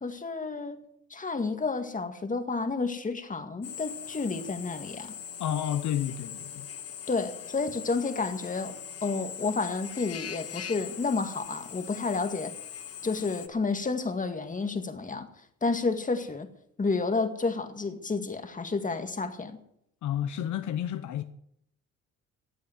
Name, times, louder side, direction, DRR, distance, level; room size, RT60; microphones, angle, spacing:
voice 1, 0.0-0.8 1.1-5.1 7.1-8.7 9.0-12.5 13.0-15.3 15.6-16.5 16.8-19.6, left 4 dB, 25° left, 2.0 m, -30 dB
Drill, 3.6-13.5, left 8 dB, 50° left, 1.1 m, -41 dB
voice 2, 5.4-6.7 20.0-21.2, left 10 dB, 75° left, 0.9 m, -31 dB
15.0 x 8.3 x 8.0 m
cardioid pair, 90°, 30 cm